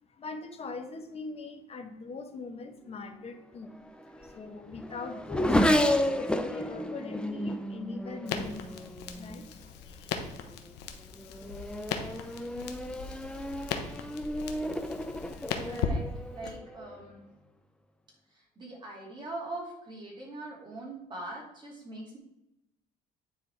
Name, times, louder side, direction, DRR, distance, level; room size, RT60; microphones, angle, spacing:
voice 1, 0.1-3.8 4.2-10.1 10.4-10.5, left 3 dB, 35° left, 6 dB, 1.1 m, -41 dB
Race car auto racing / Accelerating revving vroom, 3.6-9.5 10.3-10.7 11.1-17.0, left 1 dB, 5° left, 0.6 m, -32 dB
Crackle, 8.3-16.6, left 7 dB, 85° left, 0.9 m, -38 dB
voice 2, 15.7-16.0 16.3-17.2 18.6-22.2, right 2 dB, 25° right, -3 dB, 2.7 m, -41 dB
9.4 x 4.1 x 4.6 m, 0.86 s
cardioid pair, 110°, 17 cm